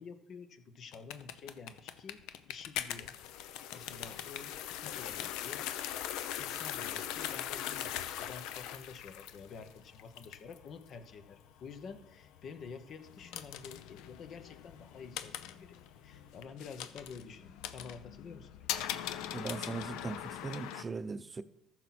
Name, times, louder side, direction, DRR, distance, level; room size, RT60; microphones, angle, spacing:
voice 1, 0.0-2.2 2.5-3.1 3.7-4.6 4.8-5.7 6.2-15.8 16.0-18.5, left 5 dB, 55° left, 10 dB, 1.0 m, -49 dB
sound 1, 0.9-20.8, left 11 dB, 75° left, 0.6 m, -41 dB
voice 2, 19.3-21.4, right 4 dB, 30° right, 13 dB, 0.7 m, -39 dB
14.5 x 6.0 x 4.3 m, 0.82 s
supercardioid pair, 70°, 0 cm